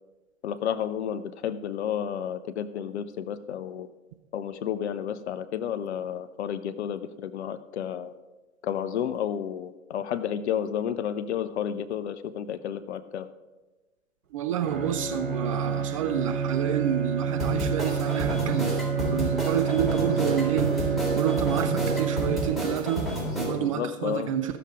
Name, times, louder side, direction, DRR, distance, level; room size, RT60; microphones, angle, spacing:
voice 1, 0.4-3.9 4.3-8.1 8.6-13.3 23.6-24.3, left 9 dB, 50° left, 13 dB, 0.6 m, -31 dB
voice 2, 14.3-24.6, right 10 dB, 25° right, 7 dB, 0.4 m, -29 dB
Bowed string instrument, 14.6-23.0, right 6 dB, 80° right, 3.1 m, -29 dB
sound 1, 17.4-23.5, equal, ahead, 3.5 m, -30 dB
14.5 x 6.8 x 5.0 m, 1.2 s
figure-of-eight pair, 105°, 42 cm